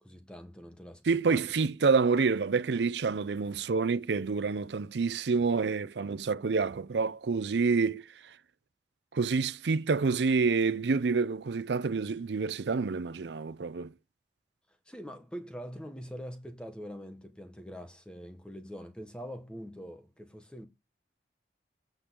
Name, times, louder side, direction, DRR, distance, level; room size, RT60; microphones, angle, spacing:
voice 1, 0.0-1.5 14.9-20.7, equal, 5° left, 1.0 m, -44 dB
voice 2, 1.1-8.1 9.1-13.9, right 4 dB, 80° right, 0.5 m, -28 dB
8.6 x 3.9 x 6.8 m
head